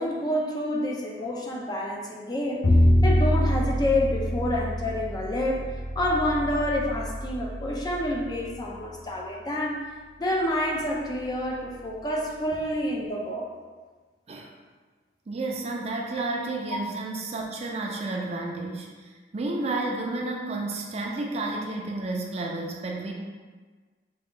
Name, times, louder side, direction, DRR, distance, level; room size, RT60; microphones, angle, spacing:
voice 1, 0.0-2.7 3.0-9.8 10.2-13.5 16.7-16.8, left 1 dB, 25° left, -2 dB, 0.4 m, -28 dB
Bowed string instrument, 2.6-8.8, equal, 55° left, 0.7 m, -25 dB
voice 2, 15.3-18.9 19.3-23.1, right 2 dB, 35° right, 0 dB, 0.4 m, -31 dB
3.7 x 2.3 x 3.7 m, 1.4 s
head